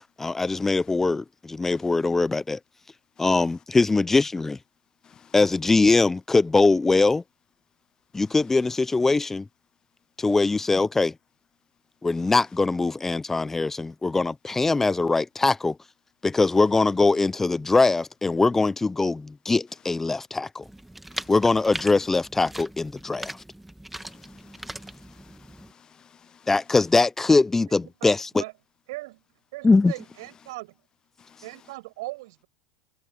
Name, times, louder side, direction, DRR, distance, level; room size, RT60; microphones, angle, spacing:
voice 1, 0.2-2.6 3.2-4.6 5.3-7.2 8.1-9.5 10.2-11.1 12.0-15.8 16.2-20.6 21.3-23.4 26.5-28.4 29.6-29.9, left 3 dB, 15° left, 1.0 m, -22 dB
sound 1, 20.6-25.7, right 1 dB, 5° right, 2.0 m, -40 dB
voice 2, 23.9-25.3 26.0-26.4 31.3-31.4, left 7 dB, 30° left, 0.7 m, -55 dB
voice 3, 27.7-28.5 28.9-29.2 29.5-30.8 31.4-32.5, right 20 dB, 70° right, 6.4 m, -39 dB
hypercardioid pair, 80°, 2 cm